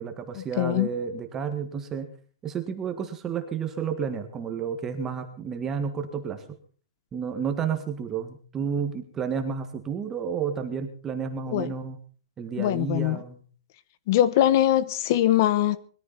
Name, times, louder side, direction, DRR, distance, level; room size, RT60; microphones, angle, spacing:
voice 1, 0.0-2.1 2.4-6.4 7.1-12.0 12.4-13.4, right 6 dB, 15° right, 1.7 m, -31 dB
voice 2, 0.6-0.9 11.5-11.7 12.6-13.2 14.1-15.8, left 13 dB, 35° left, 1.0 m, -22 dB
21.5 x 14.5 x 4.2 m
hypercardioid pair, 170°, 3 cm